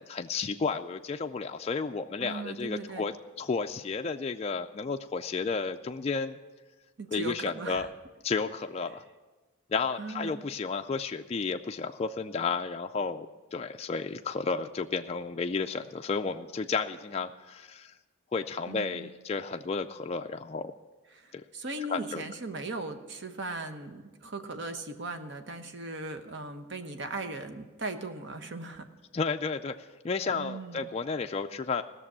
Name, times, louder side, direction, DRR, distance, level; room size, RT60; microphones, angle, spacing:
voice 1, 0.0-6.4 7.1-7.9 8.2-9.0 9.7-17.9 18.3-20.7 21.3-21.4 21.9-22.2 29.1-31.8, left 4 dB, 30° left, 5 dB, 0.3 m, -32 dB
voice 2, 2.2-3.1 7.0-7.9 10.0-10.3 18.7-19.1 21.1-28.9 30.3-30.9, right 3 dB, 55° right, 7 dB, 1.0 m, -38 dB
16.5 x 6.8 x 7.3 m, 1.2 s
head